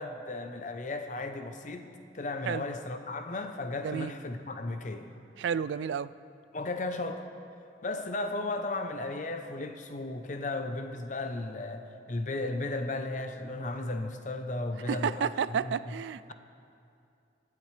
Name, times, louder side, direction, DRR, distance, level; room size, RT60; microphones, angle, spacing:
voice 1, 0.0-1.9 2.1-5.1 6.5-7.3 7.8-15.3 15.6-15.7, left 2 dB, 45° left, 7 dB, 0.7 m, -35 dB
voice 2, 3.8-4.1 5.4-6.1 14.9-16.3, right 7 dB, 75° right, 16 dB, 0.3 m, -31 dB
24.0 x 8.4 x 3.3 m, 2.5 s
head